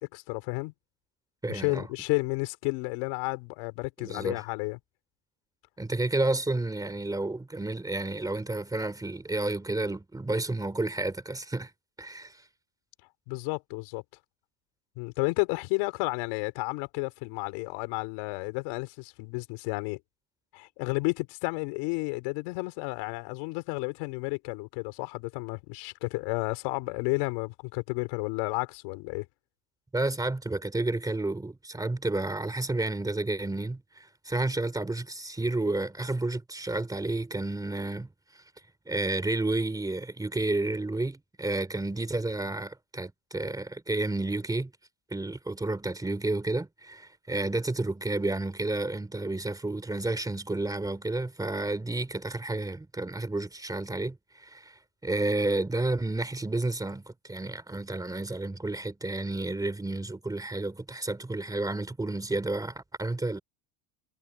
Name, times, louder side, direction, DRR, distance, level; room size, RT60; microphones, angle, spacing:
voice 1, 0.1-0.7 1.5-4.8 13.3-14.0 15.0-20.0 20.5-29.3, left 27 dB, 75° left, 4.4 m, -32 dB
voice 2, 1.4-1.9 4.0-4.4 5.8-11.7 12.0-12.4 29.9-38.4 38.9-44.7 45.1-63.4, right 2 dB, 5° right, 2.8 m, -31 dB
cardioid pair, 160°, 48 cm